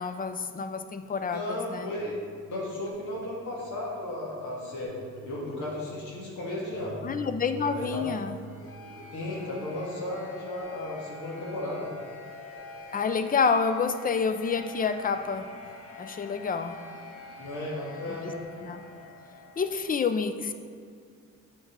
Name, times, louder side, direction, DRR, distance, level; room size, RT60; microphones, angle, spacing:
voice 1, 0.0-1.9 7.0-8.3 12.9-15.5 16.0-16.8 18.6-18.8 19.6-20.5, left 5 dB, 30° left, 9 dB, 0.5 m, -28 dB
voice 2, 1.3-2.2 2.5-7.0 7.7-8.0 9.1-11.9 17.4-18.4, left 1 dB, 80° left, -4 dB, 1.8 m, -34 dB
sound 1, 1.9-19.9, left 1 dB, 50° left, 1.4 m, -46 dB
7.9 x 5.5 x 3.6 m, 2.2 s
cardioid pair, 90°, 30 cm